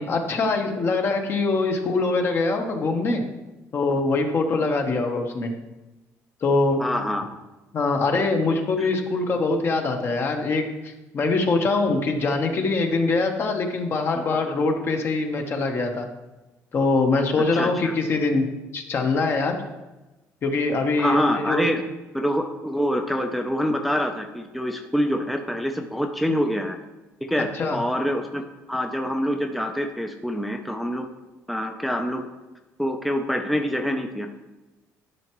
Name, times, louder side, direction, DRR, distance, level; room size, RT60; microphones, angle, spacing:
voice 1, 0.0-3.2 3.7-5.5 6.4-6.8 7.7-16.1 16.7-18.5 18.7-19.6 20.4-21.6 27.5-27.8, left 3 dB, 40° left, 4 dB, 1.0 m, -23 dB
voice 2, 6.8-7.2 8.8-8.9 14.1-14.2 17.4-17.9 21.0-21.8 22.1-26.8 27.2-31.1 31.5-32.3 32.8-34.3, equal, ahead, 4 dB, 0.5 m, -26 dB
11.0 x 5.7 x 3.1 m, 1.1 s
cardioid pair, 130°, 6 cm